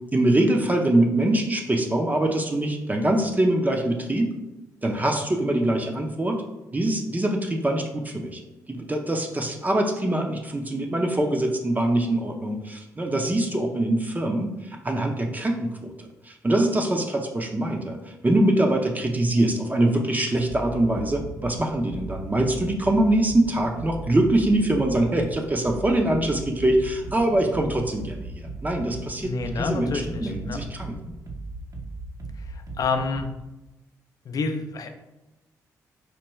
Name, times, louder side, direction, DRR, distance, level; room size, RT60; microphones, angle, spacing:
voice 1, 0.1-4.3 4.8-6.4 6.7-8.4 8.7-15.9 16.2-31.0, right 1 dB, 25° right, 2 dB, 0.6 m, -23 dB
sound 1, 20.5-33.2, right 2 dB, 55° right, 0.8 m, -37 dB
voice 2, 29.2-30.6 32.8-33.3 34.3-34.9, left 4 dB, 55° left, 7 dB, 0.5 m, -28 dB
4.5 x 2.2 x 3.0 m, 0.99 s
supercardioid pair, 55°, 7 cm